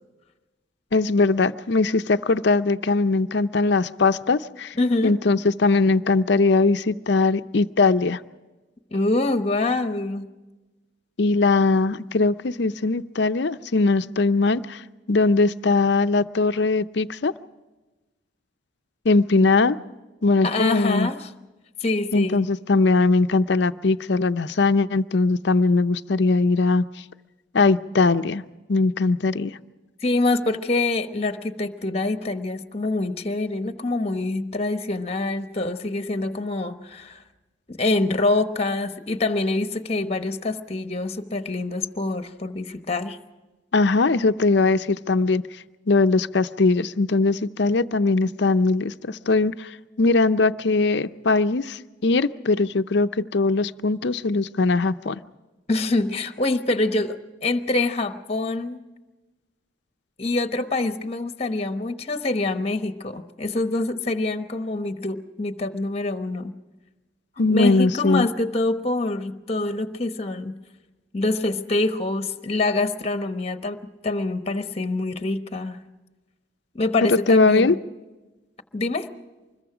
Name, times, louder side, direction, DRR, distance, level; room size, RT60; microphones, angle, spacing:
voice 1, 0.9-4.7 5.0-8.2 11.2-14.8 15.1-17.3 19.0-19.8 20.2-21.1 22.1-26.8 27.5-28.4 28.7-29.6 43.7-45.4 45.9-55.2 67.4-68.3 77.1-77.8, left 3 dB, 60° left, 12 dB, 0.6 m, -20 dB
voice 2, 4.8-5.2 8.9-10.3 20.4-21.3 21.8-22.5 30.0-37.2 37.7-43.2 55.7-58.8 60.2-66.5 67.5-70.6 71.1-75.8 76.7-77.8 78.7-79.1, left 2 dB, 30° left, 8 dB, 1.0 m, -25 dB
25.0 x 21.5 x 4.9 m, 1.1 s
head